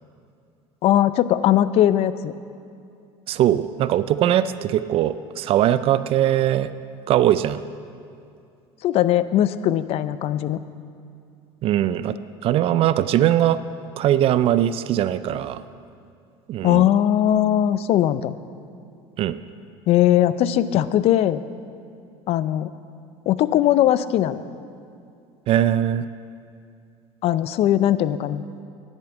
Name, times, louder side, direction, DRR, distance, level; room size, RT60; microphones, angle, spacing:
voice 1, 0.8-2.3 8.8-10.6 16.6-18.3 19.9-21.4 22.3-22.7 23.3-24.4 27.2-28.4, left 12 dB, 55° left, 15 dB, 0.5 m, -19 dB
voice 2, 3.3-6.7 7.1-7.6 11.6-12.1 12.4-13.6 14.0-15.6 16.5-16.9 19.2-19.4 25.5-26.1, right 11 dB, 50° right, 14 dB, 0.4 m, -20 dB
10.5 x 8.2 x 7.8 m, 2.5 s
supercardioid pair, 110°, 12 cm